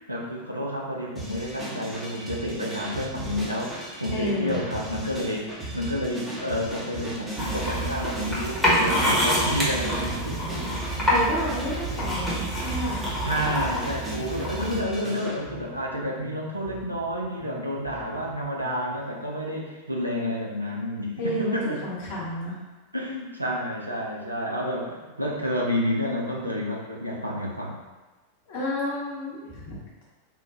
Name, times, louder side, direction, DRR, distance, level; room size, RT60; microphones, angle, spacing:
voice 1, 0.1-10.5 10.9-11.1 13.2-21.8 22.9-27.8, equal, 85° right, -3 dB, 0.5 m, -30 dB
sound 1, 1.2-15.4, right 1 dB, 15° right, 0.8 m, -37 dB
voice 2, 4.1-4.6 11.1-13.0 21.2-22.6 28.5-30.0, left 1 dB, 50° left, -5 dB, 1.0 m, -31 dB
sound 2, 7.4-14.8, equal, 5° left, 1.0 m, -27 dB
Bass guitar, 10.2-19.0, left 2 dB, 30° left, 0.6 m, -48 dB
3.6 x 2.2 x 2.6 m, 1.2 s
figure-of-eight pair, 90°, 0 cm